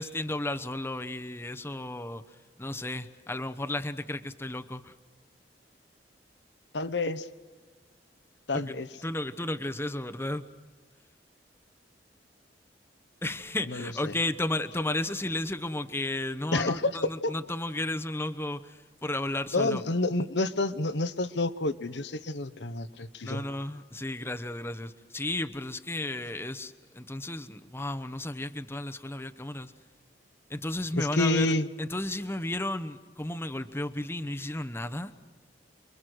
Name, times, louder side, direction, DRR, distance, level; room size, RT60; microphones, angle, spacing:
voice 1, 0.0-2.2 2.6-4.9 8.5-10.5 13.2-19.8 23.2-29.7 30.5-35.1, left 1 dB, 15° left, 9 dB, 0.9 m, -33 dB
voice 2, 6.7-7.3 8.5-8.9 13.7-14.1 16.5-16.9 17.2-17.3 19.5-23.4 31.0-31.7, left 2 dB, 70° left, 12 dB, 1.1 m, -29 dB
29.0 x 23.0 x 6.3 m, 1.4 s
head